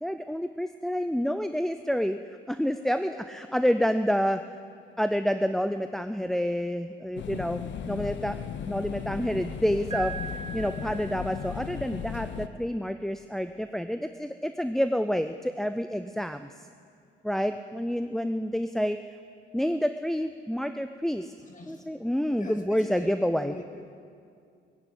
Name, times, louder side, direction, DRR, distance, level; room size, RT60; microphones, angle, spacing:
voice 1, 0.0-2.2 2.5-4.4 5.0-7.6 7.9-8.4 8.7-10.2 10.5-16.5 17.2-19.0 19.5-21.3 21.7-23.5, equal, ahead, 9 dB, 0.4 m, -28 dB
sound 1, 7.2-12.5, left 8 dB, 65° left, 0.8 m, -36 dB
Piano, 9.9-11.8, right 6 dB, 30° right, 2.1 m, -40 dB
voice 2, 21.4-21.9 22.4-23.8, left 2 dB, 40° left, 3 dB, 2.1 m, -44 dB
19.0 x 8.2 x 9.1 m, 2.4 s
cardioid pair, 90°, 20 cm